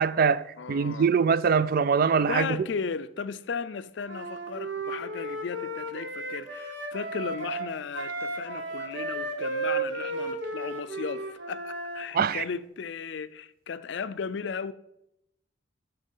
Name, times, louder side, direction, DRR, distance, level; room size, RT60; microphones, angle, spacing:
voice 1, 0.0-0.4 0.7-2.5 12.1-12.4, right 6 dB, 50° right, 0.4 m, -23 dB
voice 2, 0.6-1.1 2.3-14.7, left 5 dB, 65° left, 0.4 m, -35 dB
Wind instrument woodwind instrument, 4.1-12.1, right 2 dB, 65° right, 1.2 m, -34 dB
11.5 x 4.3 x 5.4 m
head